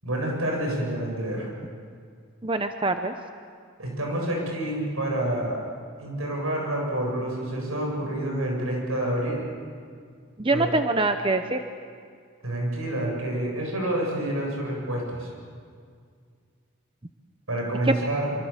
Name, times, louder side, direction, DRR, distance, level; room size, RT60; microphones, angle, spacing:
voice 1, 0.0-1.5 3.8-5.6 6.0-9.5 10.5-10.7 12.4-15.3 17.5-18.3, right 1 dB, 80° right, 0 dB, 7.9 m, -28 dB
voice 2, 2.4-3.1 10.4-11.6 17.9-18.0, right 2 dB, 25° right, 7 dB, 0.8 m, -24 dB
26.0 x 25.0 x 7.3 m, 2.1 s
head